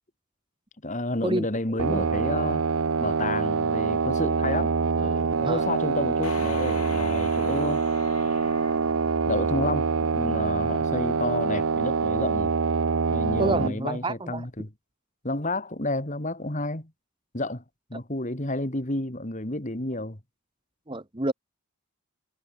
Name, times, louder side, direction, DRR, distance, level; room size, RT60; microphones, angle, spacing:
voice 1, 0.8-2.6 3.0-7.9 9.3-12.5 13.1-14.7 15.2-16.9 17.3-17.6 17.9-20.2, left 2 dB, 35° left, 2.4 m, -31 dB
sound 1, 1.8-13.7, right 5 dB, 70° right, 0.7 m, -25 dB
sound 2, 6.2-9.9, left 6 dB, 80° left, 5.0 m, -43 dB
voice 2, 13.4-14.5 20.9-21.3, right 2 dB, 20° right, 1.3 m, -28 dB
head